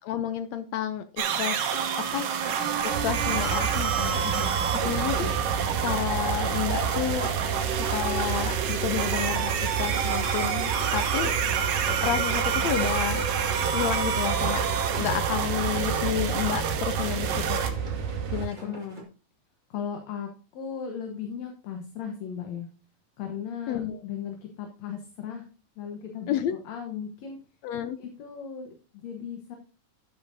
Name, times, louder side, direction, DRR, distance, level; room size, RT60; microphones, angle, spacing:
voice 1, 0.0-2.3 2.8-4.2 4.8-5.4 5.8-7.3 7.7-11.3 11.9-13.2 13.7-14.6 15.0-17.6 18.3-18.8 23.7-24.0 26.3-26.5 27.6-28.0, left 10 dB, 80° left, 10 dB, 1.5 m, -31 dB
sound 1, 1.2-17.7, right 7 dB, 85° right, 2.8 m, -28 dB
sound 2, 2.9-18.5, right 7 dB, 65° right, 3.2 m, -32 dB
sound 3, 3.6-19.0, right 2 dB, 20° right, 1.4 m, -47 dB
voice 2, 18.6-19.1 19.7-22.7 23.2-25.4 25.8-27.4 28.0-29.6, left 7 dB, 65° left, 3 dB, 2.2 m, -37 dB
12.5 x 9.0 x 2.7 m, 0.35 s
omnidirectional pair, 3.8 m